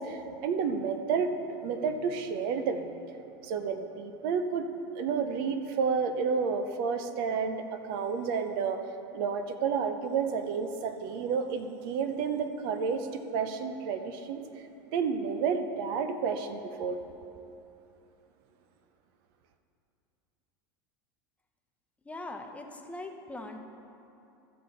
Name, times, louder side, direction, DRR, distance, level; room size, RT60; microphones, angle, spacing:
voice 1, 0.0-1.4 1.6-2.9 3.4-4.7 4.9-8.8 9.1-14.4 14.9-17.0, right 6 dB, 65° right, 8 dB, 0.8 m, -30 dB
voice 2, 22.0-23.6, left 2 dB, 10° left, 3 dB, 0.9 m, -41 dB
14.5 x 6.6 x 4.1 m, 2.8 s
hypercardioid pair, 100°, 13 cm